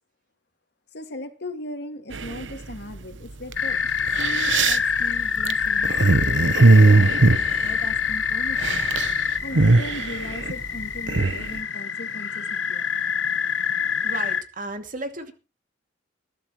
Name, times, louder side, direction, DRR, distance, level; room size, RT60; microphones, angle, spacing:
voice 1, 0.9-3.9 4.2-8.9 9.4-12.9, left 1 dB, 60° left, 7 dB, 2.2 m, -38 dB
sound 1, 2.1-2.8 3.5-3.6 4.0-8.2 8.5-9.1 9.4-11.5, right 3 dB, 75° right, 1.0 m, -19 dB
sound 2, 3.5-14.4, left 6 dB, 85° left, 1.3 m, -26 dB
voice 2, 14.0-15.3, right 2 dB, 45° right, 6 dB, 2.5 m, -34 dB
20.5 x 13.0 x 3.1 m, 0.33 s
head